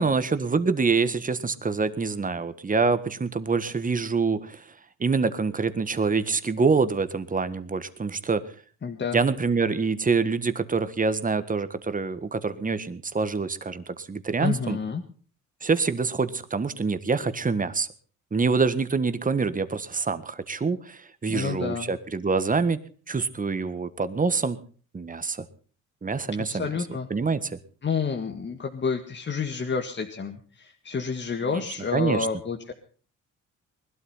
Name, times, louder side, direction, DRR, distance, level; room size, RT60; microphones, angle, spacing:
voice 1, 0.0-4.7 5.0-8.4 9.1-14.8 15.6-17.9 18.3-22.8 23.1-24.6 24.9-25.4 26.0-26.7 27.1-27.6 31.5-31.6 31.9-32.3, right 4 dB, 25° right, 12 dB, 1.6 m, -26 dB
voice 2, 8.8-9.2 14.4-15.0 21.3-21.9 26.5-27.1 27.8-32.7, left 5 dB, 40° left, 3 dB, 1.9 m, -29 dB
20.5 x 12.5 x 5.7 m, 0.42 s
cardioid pair, 90°, 30 cm